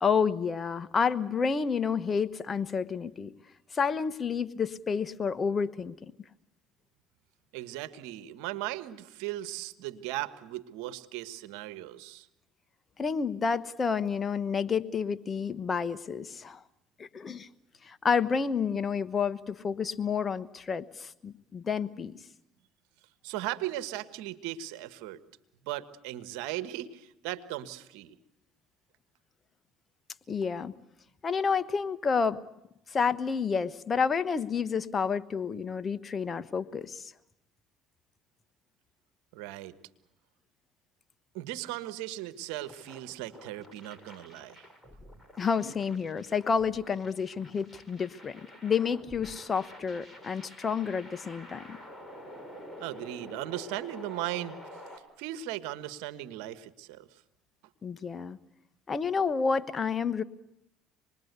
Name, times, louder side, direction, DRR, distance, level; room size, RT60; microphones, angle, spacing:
voice 1, 0.0-3.3 3.7-6.1 13.0-16.6 17.0-17.5 17.8-22.2 30.3-30.7 31.2-32.4 32.9-37.1 45.4-51.8 57.8-58.4 58.9-60.2, left 6 dB, 35° left, 13 dB, 1.2 m, -30 dB
voice 2, 7.5-12.3 23.2-25.2 25.6-28.2 39.3-39.8 41.3-44.7 52.8-54.6 55.2-57.2, right 14 dB, 80° right, 12 dB, 1.3 m, -37 dB
sound 1, 42.5-55.0, equal, 5° left, 6.6 m, -49 dB
26.5 x 21.0 x 8.1 m, 0.84 s
supercardioid pair, 80°, 0 cm